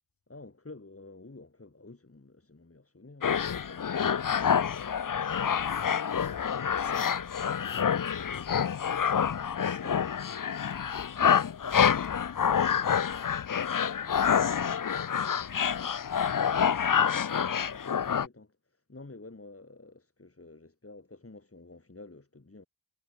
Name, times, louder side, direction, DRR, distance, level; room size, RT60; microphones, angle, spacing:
voice 1, 0.3-7.1 9.8-10.1 17.2-22.6, left 2 dB, 40° left, 7.3 m, -51 dB
sound 1, 3.2-18.3, left 7 dB, 70° left, 0.8 m, -27 dB
voice 2, 6.6-10.5 11.1-12.9 15.3-16.4, left 5 dB, 85° left, 3.5 m, -52 dB
wide cardioid pair, 70°, 34 cm